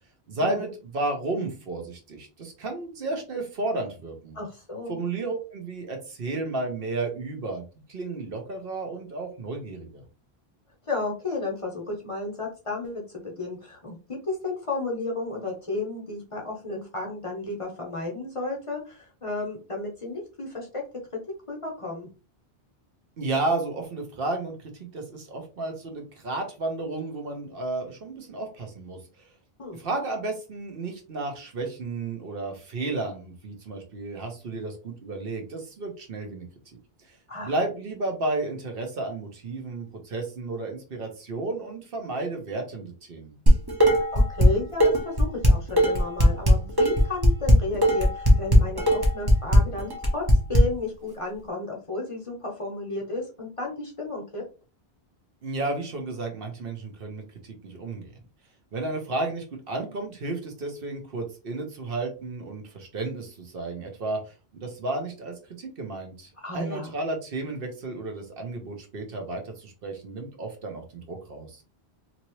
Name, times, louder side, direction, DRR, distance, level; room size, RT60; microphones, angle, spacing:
voice 1, 0.3-0.7 0.9-4.4 4.9-7.6 7.9-10.0 23.2-29.0 29.7-36.4 37.1-37.2 37.4-43.4 55.4-58.1 58.7-71.6, right 2 dB, 65° right, 3 dB, 1.0 m, -32 dB
voice 2, 4.3-5.0 10.9-20.7 21.5-22.1 29.6-29.8 37.3-37.5 43.8-50.2 50.5-54.4 66.4-66.9, left 2 dB, 35° left, -1 dB, 0.8 m, -33 dB
Dishes pots and pans, 43.5-44.5 44.8-50.6, equal, 25° right, 0.8 m, -18 dB
2.8 x 2.7 x 3.0 m, 0.33 s
omnidirectional pair, 1.1 m